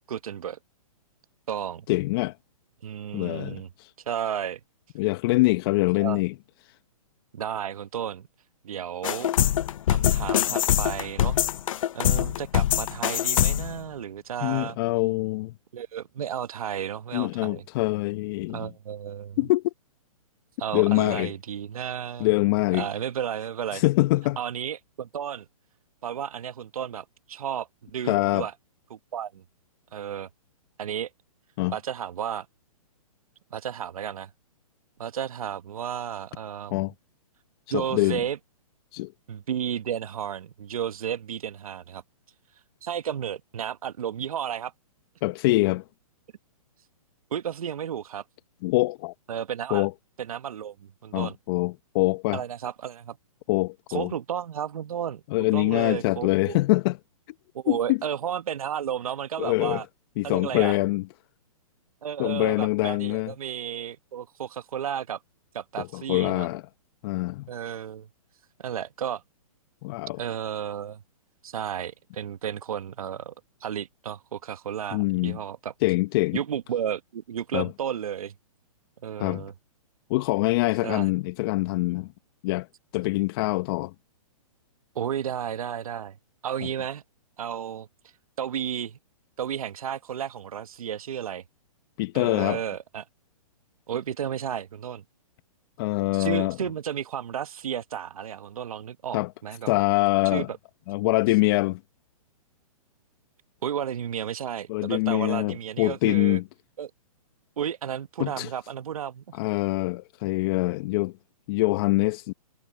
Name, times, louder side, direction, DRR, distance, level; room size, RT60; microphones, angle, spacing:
voice 1, 0.1-0.6 1.5-1.8 2.8-3.7 4.1-4.6 5.9-6.2 7.3-8.3 8.6-9.3 9.9-11.4 11.9-14.8 15.7-17.6 18.5-19.4 20.6-22.3 22.7-23.8 24.4-25.5 26.0-28.5 28.9-29.4 29.9-30.3 30.8-31.1 31.7-32.5 33.5-34.3 35.0-36.8 37.7-38.4 39.3-42.0 42.8-44.7 47.3-48.2 49.3-49.9 50.2-51.4 52.3-53.2 53.9-56.6 57.5-59.8 60.2-60.8 62.0-65.2 65.5-66.5 67.5-68.1 68.6-69.2 70.2-71.0 71.4-73.3 73.6-75.7 76.3-78.3 79.0-79.5 80.8-81.1 84.9-86.2 86.4-87.0 87.4-87.9 88.4-89.0 89.4-91.4 92.1-93.0 93.9-95.0 96.1-99.8 100.3-100.5 103.6-106.4 106.8-106.9 107.6-109.4, right 9 dB, 70° right, 1.3 m, -33 dB
voice 2, 1.9-2.3 3.1-3.9 5.0-6.3 14.4-15.5 17.1-18.7 19.4-19.7 20.7-21.3 22.2-22.9 23.7-24.4 28.0-28.5 31.6-31.7 36.7-36.9 37.7-38.2 38.9-39.1 45.2-45.8 48.6-49.1 49.7-49.9 51.1-52.4 53.5-54.1 55.3-57.0 57.7-58.0 59.4-59.8 60.2-61.0 62.2-63.3 65.8-66.6 67.0-67.5 69.8-70.2 74.9-75.4 75.8-76.4 77.5-77.7 79.2-79.5 80.1-82.1 82.4-82.7 82.9-83.9 92.0-92.6 95.8-96.6 99.1-99.3 99.7-100.5 100.9-101.8 104.7-106.4 108.2-108.5 109.3-111.1 111.5-112.3, left 21 dB, 40° left, 1.1 m, -24 dB
sound 1, 9.0-13.8, left 11 dB, 60° left, 0.6 m, -23 dB
hypercardioid pair, 135°, 19 cm